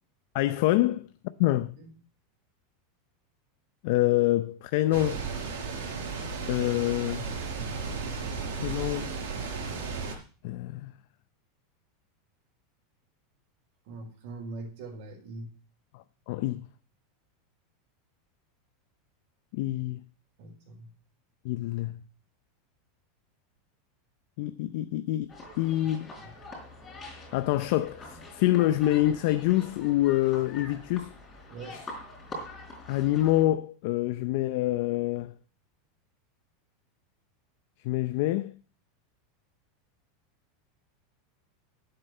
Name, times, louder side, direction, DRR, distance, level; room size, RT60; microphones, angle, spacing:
voice 1, 0.3-1.1 1.4-1.7 3.8-5.2 6.5-7.3 8.5-9.1 10.4-10.9 16.3-16.6 19.5-20.0 21.4-22.0 24.4-26.1 27.3-31.1 31.7-31.8 32.9-35.3 37.8-38.5, left 15 dB, 60° left, 0.6 m, -26 dB
sound 1, 4.9-10.1, right 5 dB, 80° right, 4.7 m, -34 dB
voice 2, 13.9-15.5 20.4-20.9 26.2-26.3 31.5-31.8, right 3 dB, 55° right, 4.7 m, -42 dB
sound 2, 25.3-33.4, left 2 dB, 15° left, 4.3 m, -44 dB
9.8 x 8.0 x 6.6 m
supercardioid pair, 155°, 0 cm